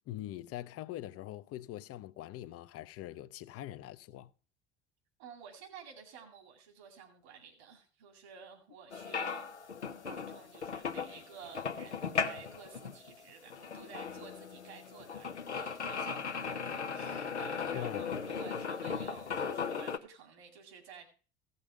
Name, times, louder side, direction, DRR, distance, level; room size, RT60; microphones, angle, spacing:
voice 1, 0.1-4.3 17.7-18.1, left 13 dB, 45° left, 0.7 m, -43 dB
voice 2, 5.2-9.6 10.0-21.1, right 7 dB, 70° right, 2.3 m, -52 dB
sound 1, 8.9-20.0, left 6 dB, 90° left, 0.8 m, -37 dB
16.0 x 5.6 x 5.0 m
figure-of-eight pair, 60°, 33 cm